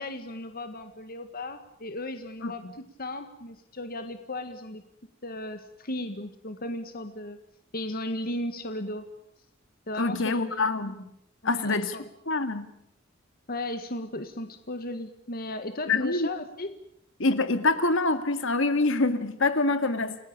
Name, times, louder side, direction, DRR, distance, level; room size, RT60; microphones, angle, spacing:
voice 1, 0.0-4.8 5.2-7.4 7.7-9.1 9.9-10.6 11.4-12.1 13.5-16.7, left 1 dB, 45° left, 8 dB, 1.8 m, -36 dB
voice 2, 2.4-2.7 10.0-11.1 11.4-12.0 12.3-12.7 15.9-16.3 17.2-20.2, left 3 dB, 70° left, 10 dB, 2.2 m, -25 dB
29.5 x 19.0 x 8.8 m, 0.77 s
head